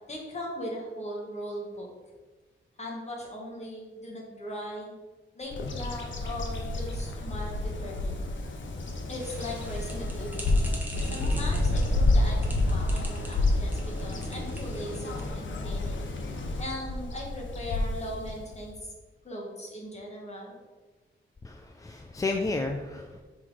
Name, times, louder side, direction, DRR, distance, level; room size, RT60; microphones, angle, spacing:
voice 1, 0.1-1.9 2.8-4.9 5.3-8.2 9.1-10.5 11.1-16.0 16.6-18.9 19.2-20.5, left 1 dB, 35° left, -2 dB, 1.4 m, -39 dB
Bird vocalization bird call bird song, 5.5-18.8, left 2 dB, 70° left, 0.8 m, -29 dB
sound 1, 9.2-15.3, right 1 dB, 10° right, 1.1 m, -44 dB
voice 2, 21.4-23.2, left 3 dB, 15° left, 3 dB, 0.3 m, -32 dB
6.0 x 3.8 x 4.7 m, 1.3 s
wide cardioid pair, 165°, 20 cm